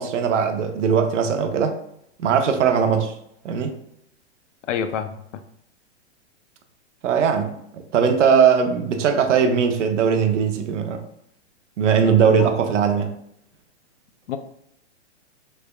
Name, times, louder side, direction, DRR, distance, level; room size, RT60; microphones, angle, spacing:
voice 1, 0.0-1.8 2.2-3.1 3.4-3.7 7.0-11.0 11.8-13.1, right 7 dB, 80° right, 7 dB, 0.6 m, -19 dB
voice 2, 4.7-5.2 12.0-12.5 14.3-14.4, left 8 dB, 85° left, 9 dB, 0.5 m, -28 dB
3.3 x 3.2 x 2.2 m, 0.75 s
hypercardioid pair, 165°, 36 cm